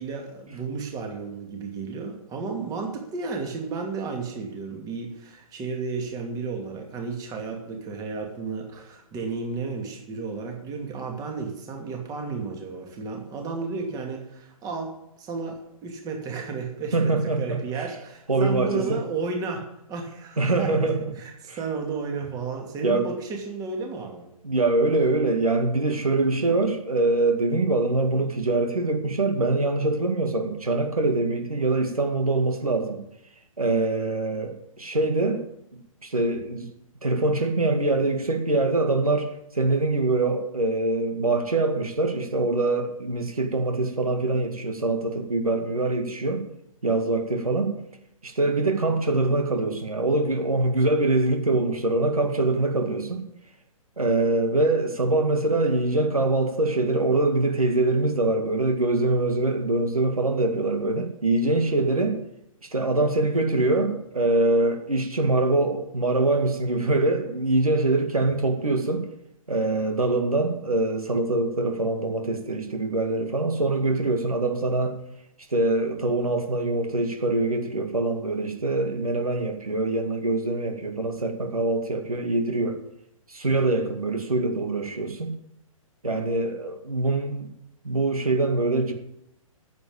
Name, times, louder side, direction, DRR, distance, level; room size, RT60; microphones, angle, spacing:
voice 1, 0.0-24.3, right 4 dB, 20° right, 2 dB, 2.5 m, -33 dB
voice 2, 16.9-17.6 18.3-19.0 20.4-21.1 21.5-21.6 22.8-23.1 24.4-33.0 33.6-35.4 36.0-36.7 37.0-46.5 46.8-47.8 48.2-53.3 54.0-62.2 62.6-69.1 69.5-75.0 75.5-82.8 83.3-85.3 86.0-87.5 87.8-88.9, right 2 dB, 85° right, 5 dB, 2.0 m, -24 dB
9.6 x 8.1 x 8.8 m, 0.79 s
figure-of-eight pair, 125°, 18 cm